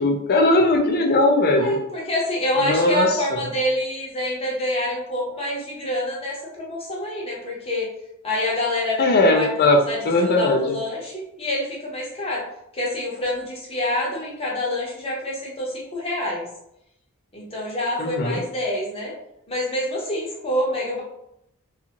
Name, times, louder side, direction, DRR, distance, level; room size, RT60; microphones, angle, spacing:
voice 1, 0.0-1.8 2.6-3.4 9.0-10.8 18.0-18.4, left 2 dB, 45° left, 3 dB, 0.5 m, -19 dB
voice 2, 1.6-7.9 8.2-9.0 9.3-12.4 12.7-16.4 17.3-19.1 19.5-21.0, left 1 dB, 25° left, -3 dB, 0.8 m, -27 dB
2.6 x 2.4 x 2.9 m, 0.80 s
head